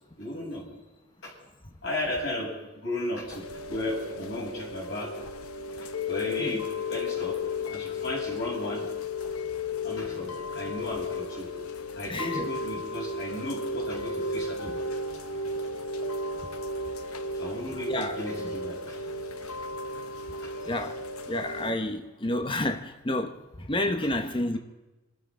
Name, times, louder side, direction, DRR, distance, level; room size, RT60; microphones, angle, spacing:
voice 1, 0.2-0.6 1.2-1.3 1.8-5.1 5.8-8.9 9.8-11.5 11.9-14.8 17.3-19.0 20.4-20.7, left 1 dB, 60° left, -5 dB, 7.6 m, -35 dB
Chime / Rain, 3.3-21.7, left 3 dB, 80° left, 1.0 m, -34 dB
voice 2, 12.1-12.5 17.9-18.2 20.7-21.0 21.3-24.6, left 1 dB, 25° left, 6 dB, 1.0 m, -30 dB
28.5 x 13.0 x 3.8 m, 1.1 s
head